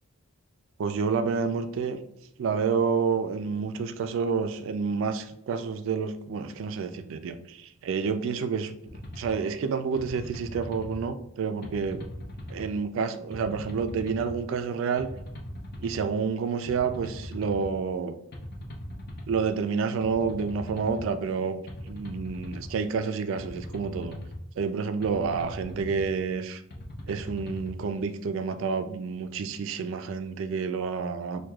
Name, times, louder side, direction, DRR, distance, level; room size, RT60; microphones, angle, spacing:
voice 1, 0.8-2.0 2.4-8.8 9.2-12.0 12.5-15.1 15.8-18.2 19.3-24.2 24.6-26.6 27.1-31.5, right 5 dB, 65° right, 9 dB, 0.3 m, -29 dB
sound 1, 8.9-9.3 10.0-11.0 11.6-12.7 13.3-14.3 15.0-16.0 16.7-17.7 18.3-19.4 20.0-21.0 21.7-22.7 23.3-24.4 25.0-26.1 26.7-27.7, left 1 dB, 50° left, 0.7 m, -39 dB
6.2 x 2.2 x 2.3 m, 0.79 s
head